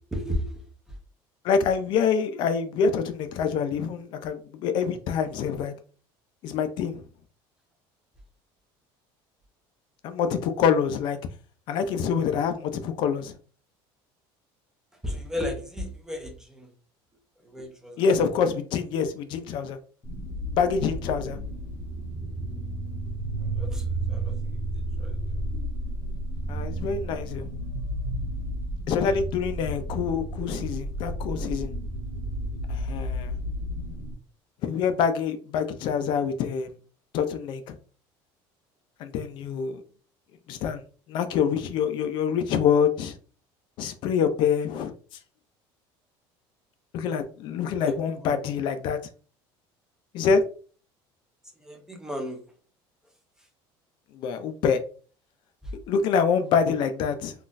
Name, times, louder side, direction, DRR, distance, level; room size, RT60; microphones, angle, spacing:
voice 1, 0.1-0.5 15.0-16.7 17.4-18.0 23.6-24.3 25.0-25.2 47.8-47.9 48.2-48.4 51.6-52.4, equal, 5° right, 0.5 m, -33 dB
voice 2, 1.4-5.7 6.4-7.0 10.0-11.2 11.7-13.4 18.0-19.8 20.5-21.4 26.5-27.5 28.9-31.7 32.7-33.3 34.6-36.7 37.1-37.8 39.0-39.8 40.5-40.8 41.1-43.2 43.8-44.9 46.9-49.0 50.1-50.4 54.1-54.8 55.9-57.3, left 6 dB, 50° left, 0.4 m, -26 dB
sound 1, 20.0-34.1, right 1 dB, 25° left, 0.9 m, -32 dB
3.8 x 2.3 x 2.5 m
cardioid pair, 160°, 10 cm